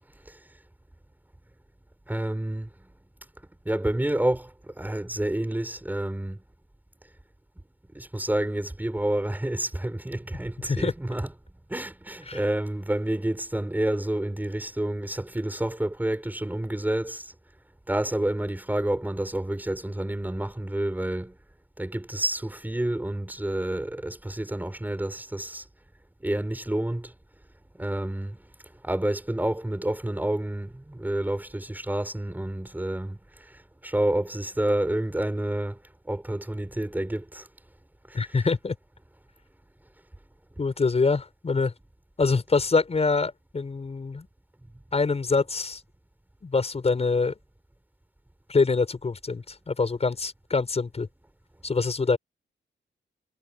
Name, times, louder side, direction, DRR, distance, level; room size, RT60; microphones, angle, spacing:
voice 1, 2.1-2.7 3.7-6.4 7.9-11.3 11.7-17.3 17.9-21.4 21.8-25.6 26.2-27.1 27.8-28.4 28.8-33.2 33.8-35.8 36.1-37.5 38.1-38.4, right 1 dB, 10° right, 7.1 m, -29 dB
voice 2, 38.1-38.7 40.6-41.7 42.2-44.3 44.9-45.8 46.4-47.3 48.5-51.1 51.6-52.2, left 4 dB, 30° left, 6.3 m, -25 dB
wide cardioid pair, 160°, 20 cm